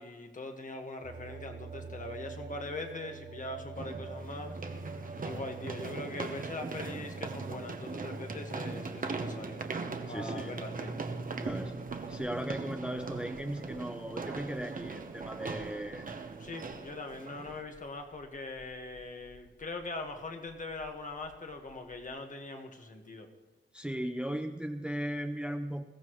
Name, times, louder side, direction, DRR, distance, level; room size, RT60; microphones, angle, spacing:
voice 1, 0.0-4.6 5.2-9.6 10.1-11.0 16.4-23.3, left 2 dB, 40° left, 4 dB, 1.5 m, -41 dB
sound 1, 1.0-17.0, right 3 dB, 60° right, 2.2 m, -46 dB
sound 2, 1.8-1.9 3.8-17.6, right 4 dB, 45° right, 1.0 m, -40 dB
voice 2, 10.1-10.5 11.4-11.8 12.1-16.1 23.7-25.8, right 1 dB, 5° right, 6 dB, 0.6 m, -37 dB
sound 3, 11.3-22.1, left 1 dB, 60° left, 5.3 m, -61 dB
21.0 x 16.0 x 3.1 m, 1.3 s
wide cardioid pair, 160°, 20 cm